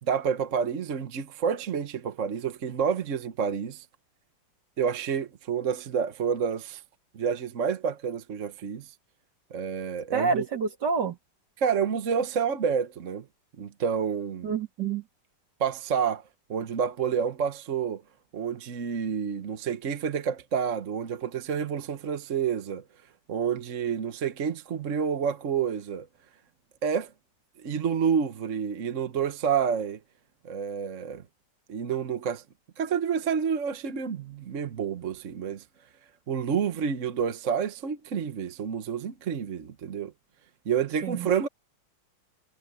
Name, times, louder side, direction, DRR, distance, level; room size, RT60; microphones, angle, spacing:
voice 1, 0.0-3.8 4.8-6.8 7.1-8.9 9.5-10.5 11.6-13.3 13.6-14.5 15.6-16.2 16.5-18.0 18.3-22.8 23.3-26.1 26.8-27.1 27.6-30.0 30.4-31.2 31.7-32.4 32.8-35.6 36.3-40.1 40.6-41.5, right 7 dB, 50° right, 1.3 m, -29 dB
voice 2, 10.1-11.2 14.4-15.0 41.0-41.5, right 5 dB, 70° right, 3.2 m, -28 dB
omnidirectional pair, 1.9 m